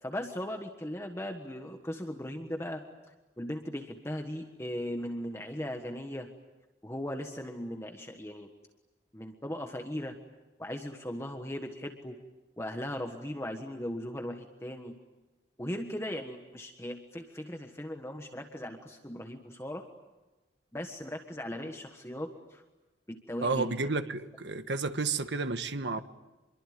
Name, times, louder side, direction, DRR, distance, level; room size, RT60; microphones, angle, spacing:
voice 1, 0.0-2.8 3.4-6.3 6.8-8.5 9.1-10.2 10.6-12.2 12.6-15.0 15.6-19.8 20.7-22.6 23.1-23.8, left 1 dB, 15° left, 4 dB, 1.4 m, -38 dB
voice 2, 23.4-26.0, right 3 dB, 75° right, 10 dB, 1.3 m, -31 dB
26.5 x 22.5 x 9.3 m, 1.1 s
head